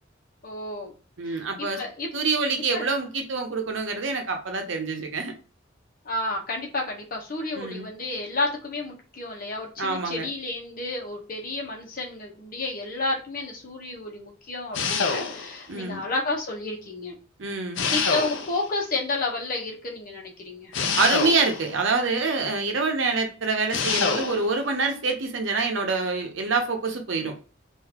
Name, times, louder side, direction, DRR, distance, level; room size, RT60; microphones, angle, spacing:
voice 1, 0.4-0.9 1.3-2.1 2.7-2.8 6.0-17.2 17.9-20.7, left 2 dB, 45° left, -1 dB, 1.0 m, -31 dB
voice 2, 1.2-1.8 2.1-5.3 7.6-7.9 9.8-10.3 15.7-16.0 17.4-17.8 21.0-27.3, right 4 dB, 70° right, 4 dB, 0.8 m, -26 dB
sound 1, 14.7-15.6 17.8-18.7 20.7-21.8 23.7-24.5, left 5 dB, 70° left, 0.6 m, -26 dB
3.8 x 2.6 x 2.9 m, 0.35 s
head